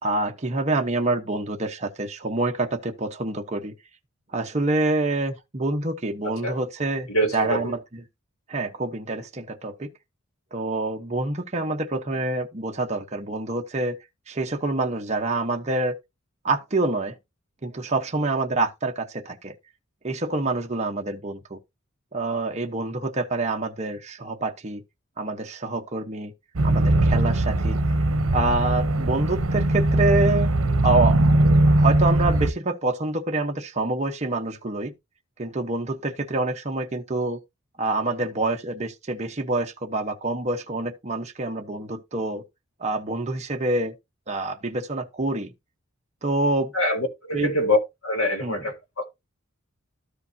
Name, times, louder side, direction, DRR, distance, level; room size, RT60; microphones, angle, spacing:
voice 1, 0.0-3.7 4.3-8.0 8.5-9.9 10.5-14.0 14.3-15.9 16.4-17.1 17.6-19.5 20.0-21.6 22.1-24.8 25.2-26.3 26.6-27.8 28.3-30.5 30.8-31.2 31.8-34.9 35.4-37.4 37.8-42.4 42.8-43.9 44.3-45.5 46.2-46.7 47.3-47.5 48.4-48.6, right 2 dB, 35° right, 1.0 m, -26 dB
voice 2, 6.2-6.6 7.1-7.7 46.7-47.8 48.0-49.0, left 1 dB, 75° left, 1.9 m, -25 dB
sound 1, 26.6-32.5, right 1 dB, 80° right, 0.9 m, -20 dB
13.5 x 5.0 x 2.7 m
head